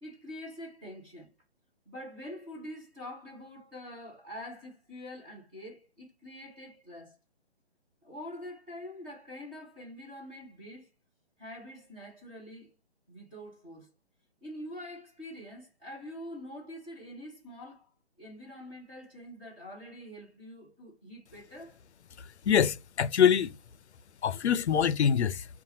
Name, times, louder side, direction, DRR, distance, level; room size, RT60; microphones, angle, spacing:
voice 1, 0.0-1.3 1.9-7.2 8.0-10.9 11.4-12.7 13.1-13.9 14.4-17.9 18.2-21.8, left 1 dB, 10° right, 0.5 m, -45 dB
voice 2, 22.2-23.5 24.2-25.5, left 8 dB, 80° left, 0.5 m, -25 dB
5.5 x 2.4 x 2.7 m
hypercardioid pair, 150°, 33 cm